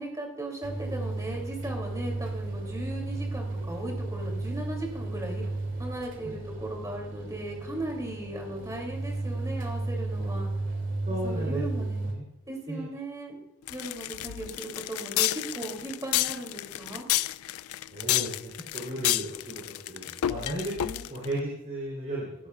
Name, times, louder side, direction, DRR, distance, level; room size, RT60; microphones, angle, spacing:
voice 1, 0.0-5.4 5.8-10.5 11.1-12.1 12.5-13.4 13.7-17.0, right 1 dB, 15° right, 1 dB, 2.8 m, -37 dB
sound 1, 0.6-12.1, right 2 dB, 60° right, 2.5 m, -34 dB
voice 2, 6.2-6.5 11.1-12.2 12.7-12.8 17.9-22.3, right 1 dB, 35° right, -5 dB, 3.5 m, -35 dB
sound 2, 13.7-21.3, left 14 dB, 80° left, 0.3 m, -30 dB
15.5 x 12.5 x 2.4 m, 0.86 s
head